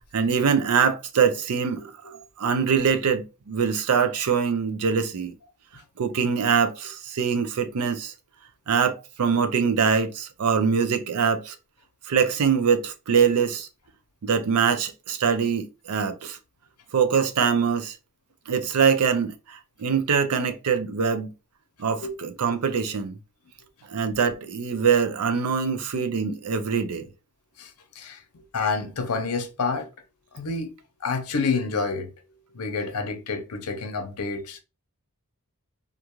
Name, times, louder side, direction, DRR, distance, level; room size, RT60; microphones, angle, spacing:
voice 1, 0.1-5.3 6.0-8.1 8.7-11.6 12.1-13.7 14.2-16.4 16.9-18.0 18.5-21.3 21.8-23.2 23.9-27.1, right 6 dB, 85° right, 0.5 m, -23 dB
voice 2, 27.6-28.2 28.5-29.9 30.3-30.7 31.0-32.1 32.5-34.6, left 4 dB, 90° left, 0.6 m, -28 dB
2.5 x 2.3 x 2.9 m
head